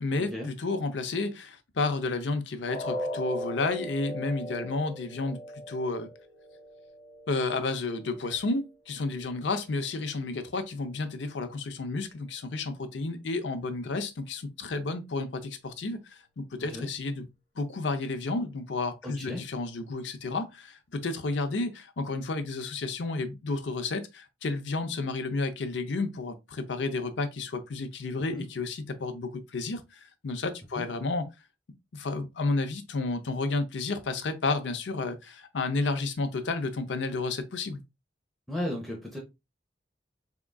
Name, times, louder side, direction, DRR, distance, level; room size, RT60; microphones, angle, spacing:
voice 1, 0.0-5.4 5.7-6.1 7.3-17.3 17.6-31.3 31.9-37.8, left 3 dB, 75° left, 0.6 m, -31 dB
sound 1, 2.7-8.6 9.0-9.2 9.7-9.8, left 1 dB, 40° left, 1.7 m, -39 dB
voice 2, 16.6-16.9 19.0-19.4 28.3-28.4 30.7-30.8 38.5-39.2, left 1 dB, ahead, 0.7 m, -35 dB
3.6 x 3.6 x 2.2 m
head